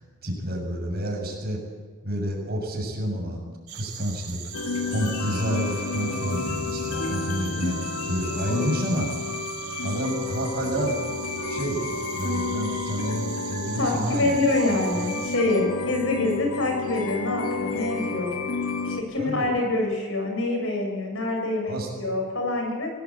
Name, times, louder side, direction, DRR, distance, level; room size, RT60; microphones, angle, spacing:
voice 1, 0.0-1.6 2.0-4.4 4.9-7.8 8.0-9.1 9.8-11.0 11.4-11.8 12.2-14.3 14.9-15.1 19.2-19.5 21.7-21.9, equal, 45° right, 0 dB, 7.0 m, -29 dB
sound 1, 3.7-15.4, right 8 dB, 85° right, 5.0 m, -40 dB
sound 2, 4.5-19.0, left 3 dB, 90° left, 2.2 m, -30 dB
voice 2, 13.8-18.3 18.9-22.9, left 2 dB, 65° left, 2 dB, 7.5 m, -26 dB
25.0 x 18.0 x 8.7 m, 1.5 s
head